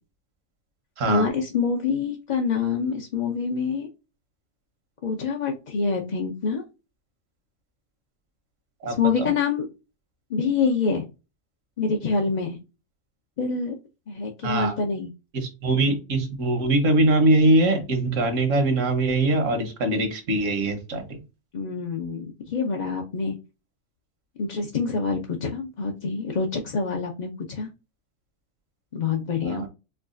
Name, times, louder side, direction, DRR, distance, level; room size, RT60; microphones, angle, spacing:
voice 1, 1.1-3.9 5.0-6.6 8.8-9.6 10.3-11.1 11.8-12.6 13.4-13.8 14.1-15.1 21.5-23.4 24.4-27.7 28.9-29.6, left 5 dB, 45° left, 1 dB, 0.6 m, -26 dB
voice 2, 8.8-9.3 14.4-14.7 15.3-21.2 29.4-29.7, right 2 dB, 70° right, 5 dB, 1.4 m, -22 dB
4.7 x 2.3 x 2.5 m, 0.28 s
omnidirectional pair, 1.4 m